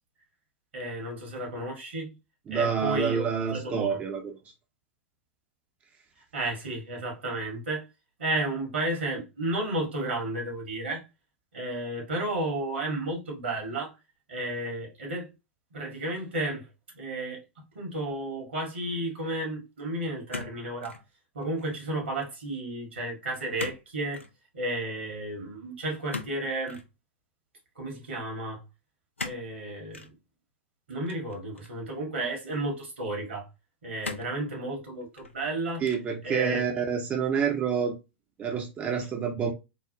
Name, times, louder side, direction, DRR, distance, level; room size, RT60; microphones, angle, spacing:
voice 1, 0.7-2.1 2.5-4.0 6.3-7.8 8.2-11.0 11.5-13.9 14.3-15.3 15.7-16.7 16.9-17.4 17.7-21.0 21.3-24.2 24.5-26.8 27.7-28.6 29.2-30.1 30.9-33.4 33.8-35.8 36.2-36.6, right 1 dB, 70° right, 1.6 m, -32 dB
voice 2, 2.5-4.4 35.8-38.0 38.4-39.5, right 6 dB, 25° right, 0.6 m, -28 dB
sound 1, 20.3-21.1 21.4-21.8 23.6-23.8 24.1-24.3 26.1-26.9 29.2-29.5 29.9-30.1 31.1-31.8 32.5-32.6 34.0-34.4 35.0-35.5 35.8-36.2, left 3 dB, 85° left, 0.5 m, -39 dB
3.8 x 2.1 x 2.8 m
figure-of-eight pair, 95°, 6 cm